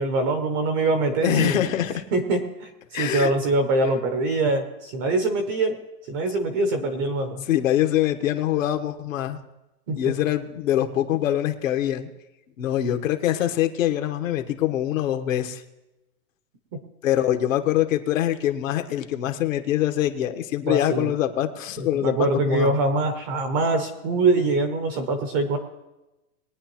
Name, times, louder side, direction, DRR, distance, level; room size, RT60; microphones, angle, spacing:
voice 1, 0.0-1.7 2.1-5.8 6.1-7.4 9.9-10.1 20.7-21.1 22.0-25.6, right 2 dB, 15° right, 7 dB, 0.5 m, -23 dB
voice 2, 1.2-2.0 2.9-3.3 6.8-6.9 7.4-9.4 10.0-12.1 12.6-15.6 17.0-22.8, left 12 dB, 65° left, 6 dB, 1.2 m, -24 dB
21.0 x 9.4 x 3.0 m, 1.0 s
supercardioid pair, 165°, 42 cm